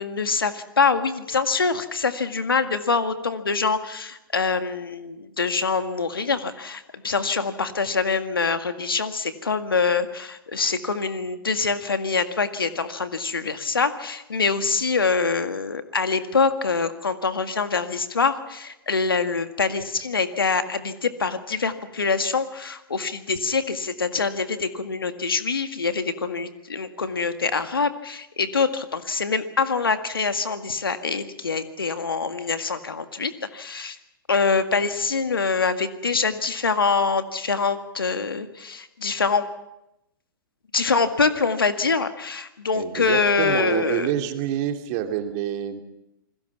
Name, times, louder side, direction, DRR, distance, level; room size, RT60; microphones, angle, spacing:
voice 1, 0.0-34.0 34.3-39.4 40.7-44.1, left 4 dB, 80° left, 9 dB, 1.9 m, -24 dB
voice 2, 42.7-45.8, right 10 dB, 40° right, 5 dB, 2.8 m, -27 dB
28.5 x 21.0 x 6.0 m, 0.87 s
figure-of-eight pair, 110°, 12 cm